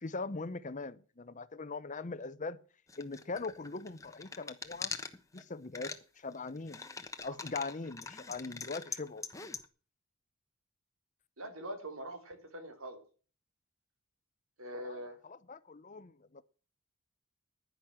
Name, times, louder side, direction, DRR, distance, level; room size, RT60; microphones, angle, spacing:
voice 1, 0.0-2.6 3.0-4.9 5.3-6.8 7.2-9.3 14.8-15.0 15.2-16.4, left 3 dB, 35° left, 0.8 m, -41 dB
sound 1, 2.9-5.4 5.7-6.0 6.3-9.7, left 4 dB, 15° left, 1.1 m, -43 dB
voice 2, 11.4-13.0 14.6-15.2, right 1 dB, 85° right, 3.7 m, -43 dB
10.5 x 10.5 x 7.5 m
head